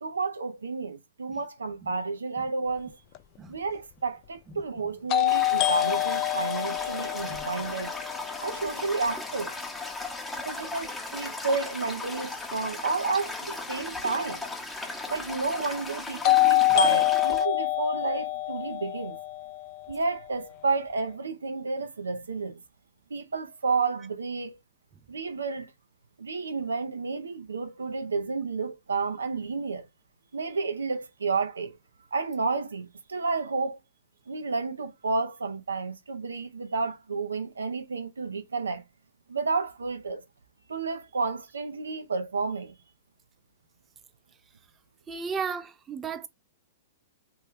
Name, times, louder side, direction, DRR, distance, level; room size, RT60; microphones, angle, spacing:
voice 1, 0.0-3.0 3.5-7.9 8.4-9.5 10.5-14.4 15.1-19.2 19.9-22.6 23.1-24.6 25.1-25.7 26.2-29.9 30.3-31.8 32.1-33.8 34.3-38.8 39.3-40.2 40.7-42.7, right 4 dB, 85° right, 0.5 m, -31 dB
sound 1, 3.1-3.2 5.1-9.0 16.2-20.3, left 16 dB, 40° left, 0.3 m, -26 dB
Toilet flush, 5.3-17.4, left 3 dB, 10° left, 0.7 m, -37 dB
voice 2, 45.1-46.3, right 6 dB, 20° right, 0.5 m, -34 dB
3.0 x 2.2 x 3.5 m
hypercardioid pair, 110°, 0 cm